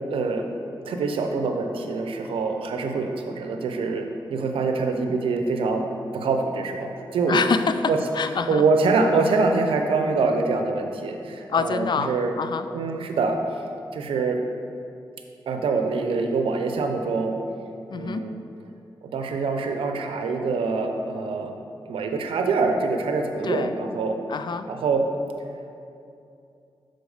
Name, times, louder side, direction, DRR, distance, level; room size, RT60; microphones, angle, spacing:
voice 1, 0.1-0.5 0.9-5.9 6.1-7.4 7.9-8.0 8.5-12.3 12.7-13.4 13.9-14.4 15.5-17.4 17.9-18.4 19.0-21.5 21.9-24.2 24.7-25.1, right 4 dB, 85° right, 4 dB, 0.5 m, -24 dB
voice 2, 7.3-8.6 11.5-12.7 17.9-18.3 23.4-23.8 24.3-24.7, left 5 dB, 55° left, 10 dB, 0.3 m, -26 dB
7.0 x 3.9 x 4.8 m, 2.7 s
cardioid pair, 45°, 9 cm